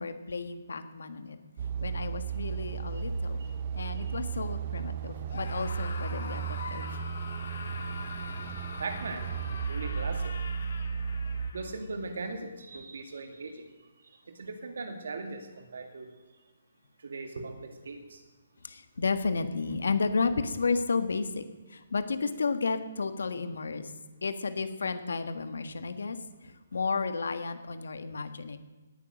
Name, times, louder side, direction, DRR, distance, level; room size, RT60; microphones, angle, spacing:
voice 1, 0.0-1.4 1.8-3.4 3.7-6.9 18.6-21.4 21.7-23.9 24.2-26.2 26.4-28.6, left 4 dB, 85° left, 9 dB, 1.7 m, -32 dB
sound 1, 1.6-11.5, right 6 dB, 30° right, 0.8 m, -34 dB
Screaming, 5.3-11.7, left 4 dB, 65° left, 2.9 m, -43 dB
voice 2, 8.8-9.2 9.7-10.3 11.5-13.7 14.4-16.1 17.0-18.2, right 3 dB, 70° right, 6 dB, 2.4 m, -39 dB
18.5 x 9.4 x 6.5 m, 1.2 s
hypercardioid pair, 175°, 0 cm